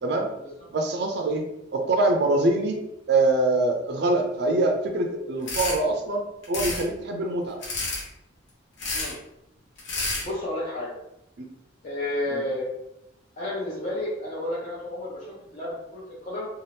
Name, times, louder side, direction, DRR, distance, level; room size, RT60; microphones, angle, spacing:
voice 1, 0.7-1.4 1.7-2.8 3.1-6.2 6.5-7.6 11.4-11.5 12.3-12.4, right 2 dB, 55° right, 3 dB, 0.4 m, -24 dB
sound 1, 5.5-5.8 6.4-6.8 7.6-8.0 8.8-9.1 9.8-10.2, left 3 dB, 65° left, 0.9 m, -29 dB
voice 2, 10.2-10.9 11.8-12.7 13.4-16.5, left 1 dB, 35° left, -7 dB, 0.6 m, -31 dB
2.7 x 2.3 x 3.3 m, 0.85 s
head